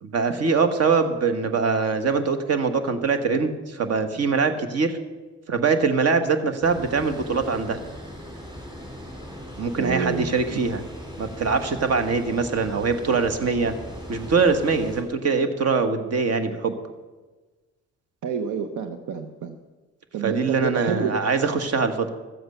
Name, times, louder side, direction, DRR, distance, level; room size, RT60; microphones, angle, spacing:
voice 1, 0.0-5.0 5.5-7.8 9.6-10.8 11.2-13.7 14.1-16.7 20.2-22.1, right 4 dB, 55° right, 8 dB, 1.4 m, -23 dB
Water, 6.6-15.0, equal, 15° right, 3.6 m, -39 dB
voice 2, 9.8-10.3 18.2-19.5 20.1-21.1, right 6 dB, 80° right, 7 dB, 0.9 m, -28 dB
13.5 x 7.9 x 6.6 m, 1.3 s
cardioid pair, 90°, 30 cm